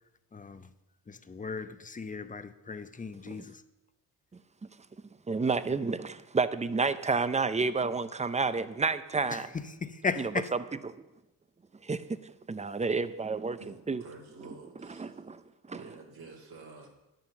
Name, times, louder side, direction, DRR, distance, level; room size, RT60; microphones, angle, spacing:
voice 1, 0.3-0.7 1.1-3.6 9.3-10.5, left 5 dB, 20° left, 0.7 m, -36 dB
voice 2, 5.3-9.5 10.2-10.3 11.8-13.6 13.9-14.0 15.0-15.4 15.7-15.8, right 4 dB, 20° right, 0.6 m, -30 dB
voice 3, 13.6-15.2 15.7-16.9, right 4 dB, 70° right, 2.9 m, -49 dB
10.5 x 7.7 x 7.2 m
cardioid pair, 100°, 39 cm